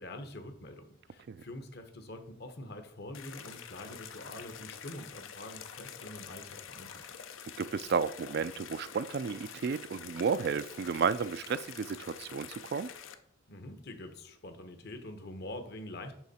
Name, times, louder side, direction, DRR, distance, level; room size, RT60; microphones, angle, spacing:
voice 1, 0.0-7.1 13.5-16.1, left 1 dB, 50° left, 7 dB, 1.0 m, -45 dB
sound 1, 3.1-13.1, left 8 dB, 70° left, 0.6 m, -47 dB
voice 2, 7.6-12.9, right 5 dB, 50° right, 16 dB, 0.3 m, -32 dB
10.5 x 3.7 x 4.2 m, 0.68 s
head